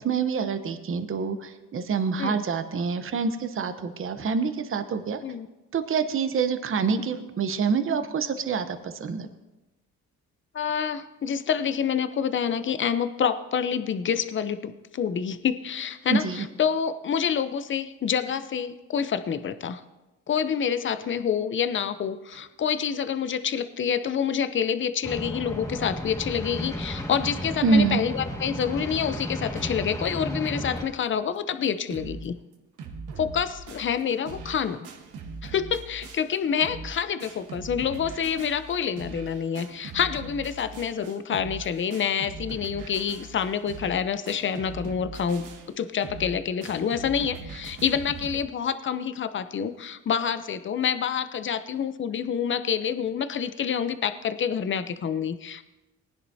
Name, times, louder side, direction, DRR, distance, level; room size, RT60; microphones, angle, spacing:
voice 1, 0.0-5.2 5.7-9.3 16.1-16.5 27.6-28.0, right 5 dB, 45° right, 9 dB, 0.9 m, -26 dB
voice 2, 10.5-19.8 20.3-32.4 33.2-34.9 35.4-55.6, left 7 dB, 40° left, 12 dB, 0.7 m, -27 dB
sound 1, 25.0-30.8, equal, 10° left, 1.9 m, -33 dB
sound 2, 29.6-30.0 30.5-30.6 30.8-30.9 31.4-31.5 31.6-32.3 32.5-48.4, right 4 dB, 85° right, 1.4 m, -41 dB
19.0 x 10.0 x 2.8 m, 1.0 s
cardioid pair, 90°, 30 cm